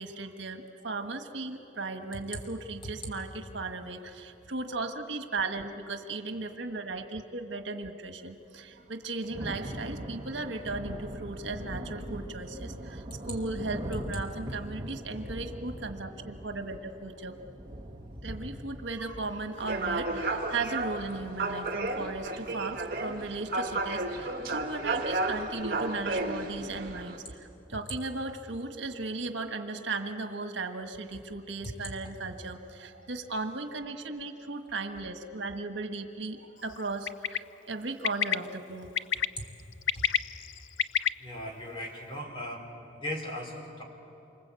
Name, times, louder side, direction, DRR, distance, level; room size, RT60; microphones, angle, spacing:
voice 1, 0.0-17.4 18.2-38.9, right 3 dB, 75° right, 6 dB, 1.5 m, -36 dB
Thunder / Rain, 8.8-21.2, equal, 25° right, 2.0 m, -41 dB
sound 1, 19.6-27.2, right 2 dB, 50° right, 2.1 m, -32 dB
Bird, 37.1-37.4 38.0-38.3 39.0-39.3 39.7-41.1, left 9 dB, 80° left, 0.5 m, -27 dB
voice 2, 39.9-40.2 41.2-42.7 43.0-43.8, left 1 dB, 25° left, 1 dB, 4.0 m, -38 dB
27.5 x 25.5 x 8.3 m, 3.0 s
head